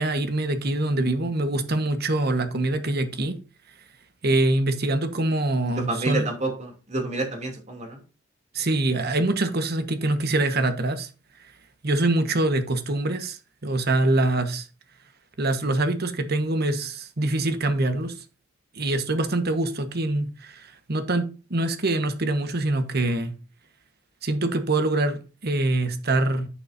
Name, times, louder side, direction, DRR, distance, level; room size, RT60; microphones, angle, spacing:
voice 1, 0.0-3.4 4.2-6.3 8.5-11.1 11.8-14.7 15.4-18.2 18.7-23.3 24.2-26.5, right 2 dB, 55° right, 1.3 m, -24 dB
voice 2, 5.9-8.0, right 2 dB, 35° right, 2.8 m, -29 dB
11.0 x 6.5 x 2.7 m
head